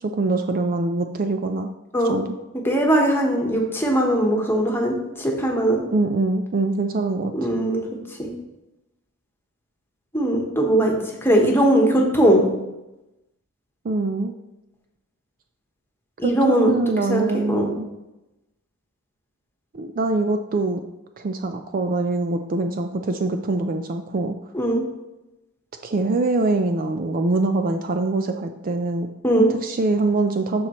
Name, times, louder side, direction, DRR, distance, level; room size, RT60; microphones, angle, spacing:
voice 1, 0.0-1.7 2.1-2.4 5.9-7.3 13.8-14.4 16.2-17.9 19.7-20.8 21.2-24.3 25.8-29.1 29.4-30.7, right 2 dB, 40° right, 7 dB, 0.4 m, -24 dB
voice 2, 2.6-5.8 7.3-7.8 8.2-8.3 10.1-12.5 16.2-16.7 17.1-17.2 17.5-17.7 24.5-24.8 29.2-29.5, right 1 dB, 10° left, 0 dB, 1.2 m, -19 dB
12.5 x 4.3 x 3.0 m, 0.97 s
head